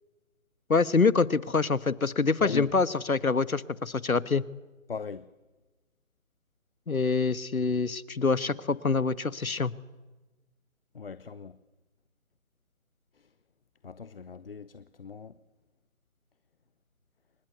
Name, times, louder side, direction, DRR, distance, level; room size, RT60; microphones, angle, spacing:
voice 1, 0.7-4.4 6.9-9.7, left 4 dB, 90° left, 1.4 m, -25 dB
voice 2, 2.4-2.8 4.9-5.3 10.9-11.6 13.8-15.4, left 5 dB, 45° left, 0.9 m, -39 dB
28.5 x 25.0 x 8.1 m
figure-of-eight pair, 155°, 41 cm